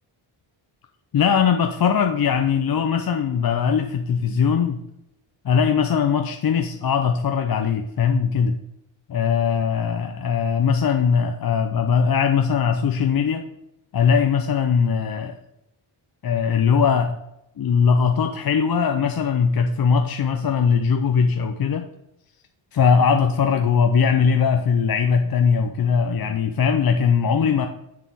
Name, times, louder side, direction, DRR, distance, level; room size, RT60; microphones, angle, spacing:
voice 1, 1.1-4.8 5.4-8.6 9.1-13.5 13.9-15.4 16.2-17.1 17.6-21.8 22.7-27.7, left 6 dB, 45° left, 5 dB, 0.6 m, -20 dB
7.4 x 4.1 x 6.9 m, 0.83 s
cardioid pair, 85°, 49 cm